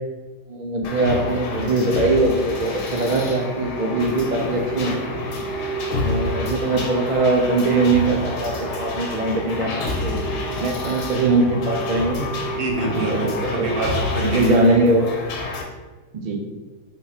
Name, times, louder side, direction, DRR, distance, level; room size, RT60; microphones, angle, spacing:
voice 1, 0.5-5.0 6.0-10.2 10.6-12.3 13.1-13.7 14.3-15.1 16.1-16.4, right 2 dB, 85° right, 1 dB, 0.4 m, -21 dB
sound 1, 0.8-15.6, left 2 dB, 80° left, 1.3 m, -28 dB
voice 2, 12.6-14.5 14.8-14.9, right 2 dB, 50° right, -1 dB, 0.7 m, -25 dB
3.7 x 2.8 x 4.0 m, 1.3 s
omnidirectional pair, 1.7 m